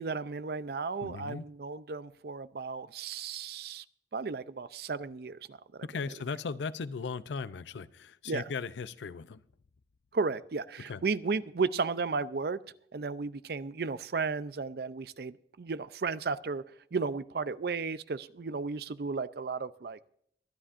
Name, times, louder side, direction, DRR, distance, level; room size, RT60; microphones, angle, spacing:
voice 1, 0.0-3.8 4.1-5.9 8.3-8.5 10.1-12.6 12.9-16.6 16.9-20.0, right 4 dB, 60° right, 0.5 m, -34 dB
voice 2, 1.0-1.5 5.9-9.4 10.9-11.0, left 5 dB, 80° left, 0.5 m, -37 dB
23.5 x 10.0 x 2.5 m
head